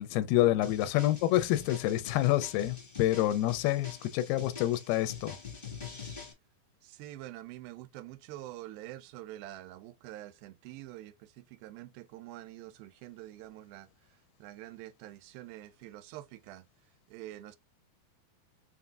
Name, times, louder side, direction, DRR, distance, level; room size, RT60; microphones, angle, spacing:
voice 1, 0.0-5.4, left 14 dB, 85° left, 2.5 m, -28 dB
sound 1, 0.6-6.3, left 6 dB, 40° left, 0.7 m, -45 dB
voice 2, 6.8-16.7 17.1-17.6, right 15 dB, 80° right, 2.4 m, -46 dB
5.8 x 3.8 x 2.4 m
omnidirectional pair, 4.3 m